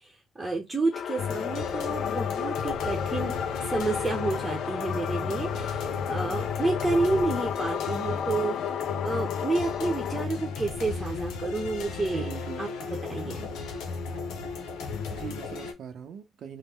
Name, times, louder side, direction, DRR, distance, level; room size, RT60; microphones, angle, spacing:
voice 1, 0.4-3.3 3.7-8.7 9.0-12.3 12.6-12.7 13.0-13.5, right 3 dB, 20° right, 0.8 m, -29 dB
sound 1, 0.9-10.3, left 8 dB, 65° left, 0.3 m, -33 dB
sound 2, 1.2-15.7, left 5 dB, 85° left, 0.7 m, -34 dB
voice 2, 12.1-12.7 15.1-16.6, right 8 dB, 70° right, 0.6 m, -40 dB
3.1 x 2.1 x 3.5 m
cardioid pair, 90°, 0 cm